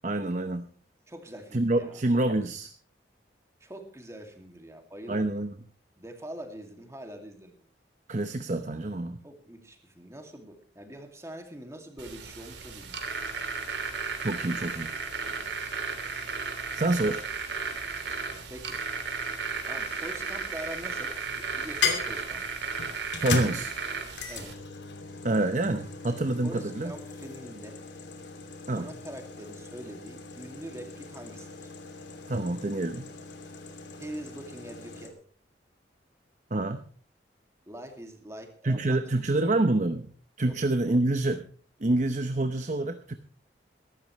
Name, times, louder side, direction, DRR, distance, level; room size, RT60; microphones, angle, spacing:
voice 1, 0.0-0.7 1.5-2.7 5.1-5.5 8.1-9.2 14.2-14.9 16.7-17.2 23.2-23.7 25.2-26.9 28.7-28.9 32.3-33.1 36.5-36.8 38.6-40.1 40.4-41.5 41.8-43.2, right 2 dB, 45° right, 8 dB, 0.8 m, -27 dB
voice 2, 1.1-2.0 3.6-5.4 6.0-7.7 9.2-13.2 15.2-15.5 18.5-18.8 19.7-22.4 24.3-24.6 26.4-27.8 28.7-31.7 34.0-35.2 37.7-39.0 39.4-39.5 40.4-40.6, right 1 dB, 15° right, 4 dB, 2.4 m, -44 dB
sound 1, 12.0-24.5, right 5 dB, 80° right, 2.7 m, -34 dB
sound 2, 20.1-20.8 21.8-35.1, left 4 dB, 90° left, 2.8 m, -37 dB
22.5 x 12.5 x 3.2 m, 0.43 s
head